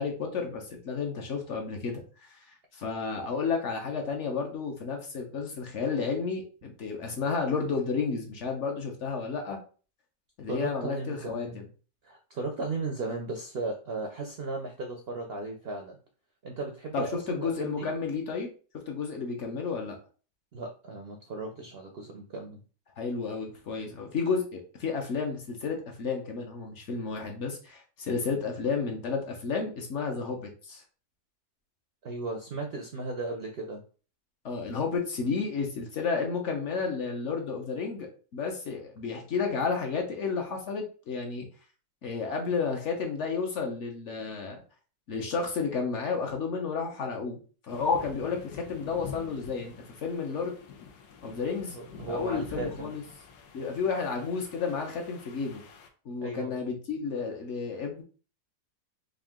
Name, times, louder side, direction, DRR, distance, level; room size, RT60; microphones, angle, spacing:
voice 1, 0.0-2.5 2.7-9.6 10.4-11.7 16.9-18.5 18.9-20.0 23.0-30.8 34.4-41.5 42.0-44.6 45.1-47.4 47.6-50.6 51.2-51.8 52.1-53.0 53.5-55.6 56.0-58.0, left 5 dB, 55° left, 2 dB, 1.0 m, -32 dB
voice 2, 10.5-11.6 12.0-16.0 16.4-17.9 20.5-22.6 32.0-33.8 51.7-52.9 56.2-56.5, right 3 dB, 65° right, 2 dB, 0.6 m, -36 dB
sound 1, 47.7-55.9, left 6 dB, 90° left, 1.2 m, -47 dB
3.8 x 2.6 x 3.5 m, 0.38 s
omnidirectional pair, 1.7 m